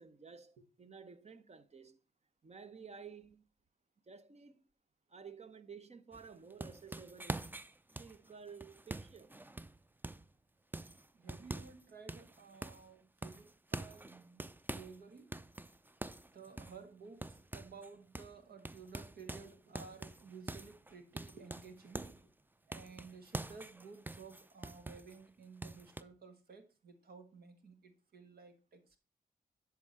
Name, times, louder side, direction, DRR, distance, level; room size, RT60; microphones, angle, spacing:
voice 1, 0.0-2.0 2.4-3.4 4.1-4.6 5.1-7.4 8.0-9.4, right 6 dB, 40° right, 0.9 m, -53 dB
sound 1, 6.1-10.3 10.7-11.8 12.1-12.9 13.2-15.0 15.3-17.9 18.1-18.4 18.7-22.2 22.7-25.2 25.6-26.0, right 2 dB, 10° right, 0.5 m, -45 dB
voice 2, 11.1-15.3 16.3-22.3 22.7-29.0, right 5 dB, 75° right, 1.5 m, -54 dB
10.5 x 3.7 x 5.6 m
supercardioid pair, 45°, 16 cm